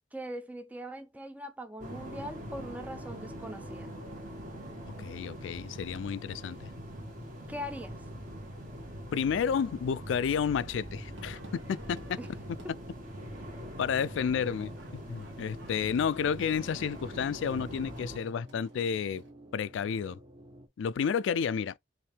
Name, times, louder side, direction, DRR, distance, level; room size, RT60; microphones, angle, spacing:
voice 1, 0.1-3.9 7.5-8.0 12.2-12.3, equal, 10° right, 0.4 m, -41 dB
sound 1, 1.8-18.2, equal, 45° right, 1.7 m, -43 dB
sound 2, 1.9-20.7, equal, 25° right, 0.8 m, -55 dB
voice 2, 5.0-6.7 9.1-12.2 13.8-19.2 19.5-20.2 20.8-21.8, left 7 dB, 70° left, 0.3 m, -31 dB
sound 3, 11.1-19.3, right 1 dB, 70° right, 1.4 m, -56 dB
5.6 x 2.6 x 3.3 m
head